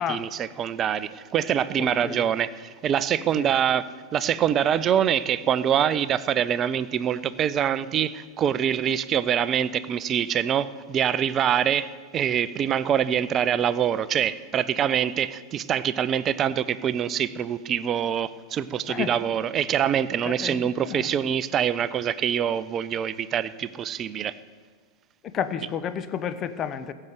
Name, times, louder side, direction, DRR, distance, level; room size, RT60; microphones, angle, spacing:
voice 1, 0.0-24.3, right 9 dB, 30° right, 16 dB, 0.5 m, -25 dB
voice 2, 1.8-2.3 3.4-3.5 18.9-19.1 20.2-21.1 25.2-26.9, left 8 dB, 30° left, 11 dB, 0.7 m, -31 dB
16.0 x 6.7 x 7.7 m, 1.5 s
figure-of-eight pair, 90°, 0 cm